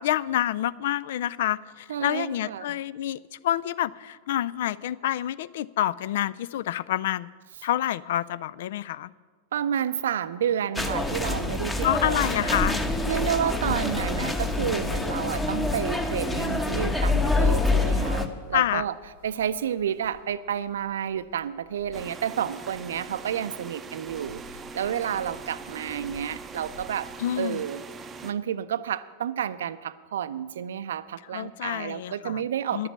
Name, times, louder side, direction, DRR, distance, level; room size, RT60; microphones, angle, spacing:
voice 1, 0.0-3.2 3.4-7.3 7.6-9.1 11.8-12.8 18.5-18.8 27.2-27.6 31.3-32.4 32.7-32.9, left 12 dB, 55° left, 17 dB, 0.4 m, -27 dB
voice 2, 1.9-2.8 9.5-12.7 13.1-18.9 19.2-24.4 24.7-27.1 27.4-27.8 28.2-32.9, right 9 dB, 60° right, 15 dB, 0.5 m, -30 dB
sound 1, 10.7-18.3, left 2 dB, 10° left, 1.0 m, -26 dB
sound 2, 13.5-26.9, left 1 dB, 80° left, 4.8 m, -50 dB
sound 3, 21.9-28.3, right 4 dB, 20° right, 0.7 m, -42 dB
11.0 x 7.9 x 8.6 m, 1.5 s
figure-of-eight pair, 90°, 0 cm